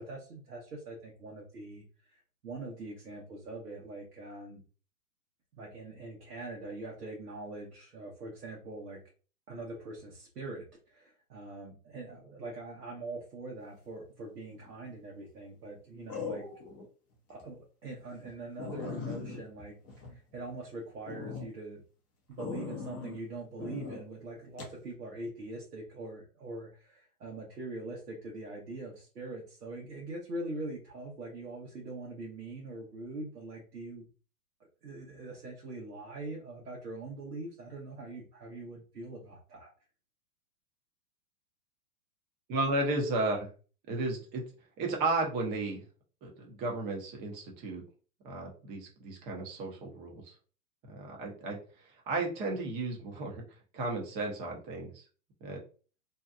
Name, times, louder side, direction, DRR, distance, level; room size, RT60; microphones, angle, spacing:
voice 1, 0.0-4.6 5.5-9.0 9.5-16.4 17.3-19.7 20.1-21.8 22.3-34.0 34.8-39.7, right 2 dB, 90° right, -2 dB, 1.0 m, -43 dB
sound 1, 14.5-14.9 16.1-16.9 17.3-17.4 17.9-18.0 18.3-18.4 18.6-20.6 21.0-21.5 22.4-23.2 23.6-24.0 24.6-24.8, left 5 dB, 20° left, 0.5 m, -40 dB
voice 2, 42.5-43.5 43.9-44.4 44.8-45.8 46.2-47.8 48.2-50.3 50.9-51.6 52.1-53.4 53.7-55.0 55.4-55.6, right 2 dB, 20° right, 0 dB, 0.7 m, -33 dB
2.7 x 2.3 x 2.3 m, 0.37 s
hypercardioid pair, 130°, 46 cm